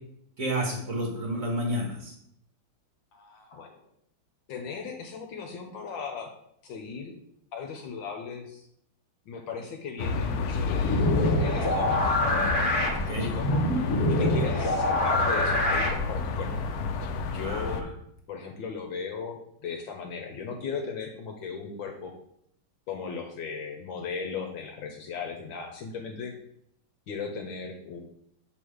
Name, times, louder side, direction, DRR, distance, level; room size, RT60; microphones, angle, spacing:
voice 1, 0.4-2.1 12.9-13.3 17.4-17.9, equal, 45° right, 0 dB, 1.4 m, -31 dB
voice 2, 3.1-3.8 4.5-6.3 6.6-7.1 7.5-8.6 9.3-11.1 11.4-12.2 13.2-13.6 14.1-16.5 17.3-17.9 18.3-19.4 19.6-22.1 22.9-26.3 27.1-28.0, left 5 dB, 75° left, 4 dB, 1.4 m, -37 dB
sound 1, 10.0-17.8, left 4 dB, 90° left, 0.8 m, -30 dB
sound 2, 10.8-16.4, left 1 dB, 45° left, 1.1 m, -25 dB
6.1 x 3.5 x 4.9 m, 0.72 s
omnidirectional pair, 2.3 m